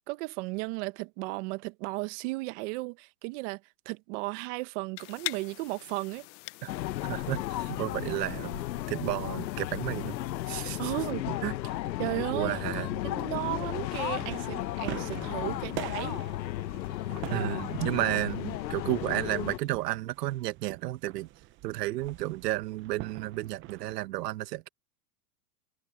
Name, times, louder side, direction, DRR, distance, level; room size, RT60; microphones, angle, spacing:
voice 1, 0.0-3.6 3.8-6.3 10.8-11.2 12.0-12.6 13.0-16.2 17.3-17.5, right 23 dB, 45° right, 1.1 m, -35 dB
sound 1, 5.0-11.1, left 22 dB, 45° left, 0.9 m, -44 dB
sound 2, 6.7-19.6, left 14 dB, 90° left, 1.1 m, -34 dB
voice 2, 7.0-10.2 10.5-10.9 11.3-11.8 12.3-12.9 17.3-21.3 21.6-24.7, right 16 dB, 70° right, 1.3 m, -32 dB
sound 3, 13.9-24.0, right 17 dB, 25° right, 0.7 m, -45 dB
supercardioid pair, 150°, 49 cm